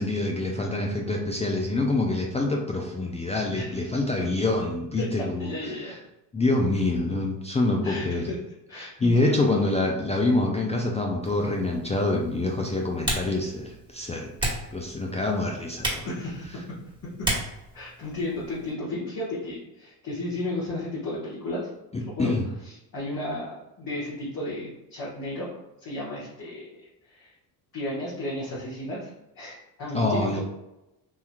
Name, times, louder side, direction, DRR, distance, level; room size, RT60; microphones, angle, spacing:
voice 1, 0.0-6.0 6.3-8.3 8.8-14.3 14.7-16.1 22.2-22.5 29.9-30.4, left 2 dB, 15° left, 0 dB, 0.4 m, -26 dB
voice 2, 3.5-3.9 5.0-5.1 5.4-5.9 7.8-8.3 8.7-9.7 16.0-16.5 17.2-17.3 17.7-21.7 22.0-22.3 22.6-27.3 27.7-30.4, left 1 dB, 45° left, -8 dB, 1.3 m, -34 dB
Typing, 11.2-18.7, right 1 dB, 10° right, 1.4 m, -35 dB
3.6 x 2.8 x 2.3 m, 0.92 s
supercardioid pair, 70°, 44 cm